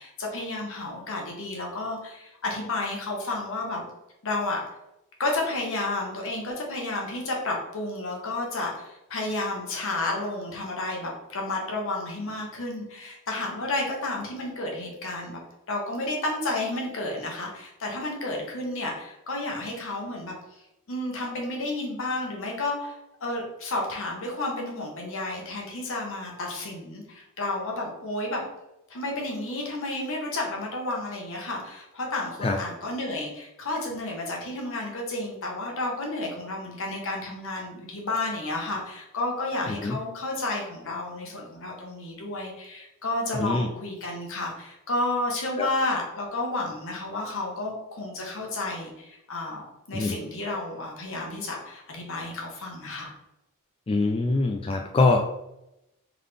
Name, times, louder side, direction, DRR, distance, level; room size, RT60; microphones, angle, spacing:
voice 1, 0.0-3.8 4.2-4.6 5.2-15.4 15.7-20.3 20.9-28.4 28.9-53.1, left 2 dB, 65° left, 0 dB, 1.2 m, -31 dB
voice 2, 53.9-55.2, left 3 dB, 25° left, 2 dB, 0.3 m, -24 dB
3.8 x 3.7 x 3.4 m, 0.86 s
head